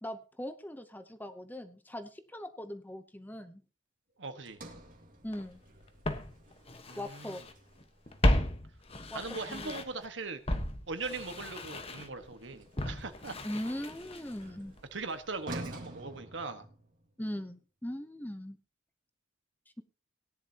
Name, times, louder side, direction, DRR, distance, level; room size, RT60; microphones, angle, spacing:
voice 1, 0.0-3.6 5.2-5.6 7.0-7.4 9.1-9.8 13.4-14.7 17.2-18.6, left 1 dB, 10° left, 9 dB, 0.8 m, -40 dB
voice 2, 4.2-4.6 6.9-7.3 9.1-10.4 10.9-13.4 14.9-16.7, right 3 dB, 70° right, 8 dB, 1.5 m, -40 dB
Sliding door, 4.4-8.7 12.2-17.1, right 1 dB, 45° right, 2.4 m, -49 dB
Walk footsteps, 5.3-5.4 6.0-7.5 7.8-10.1 10.5-14.5 14.8-14.9, left 1 dB, 30° left, 1.2 m, -34 dB
17.5 x 10.5 x 2.9 m, 0.35 s
head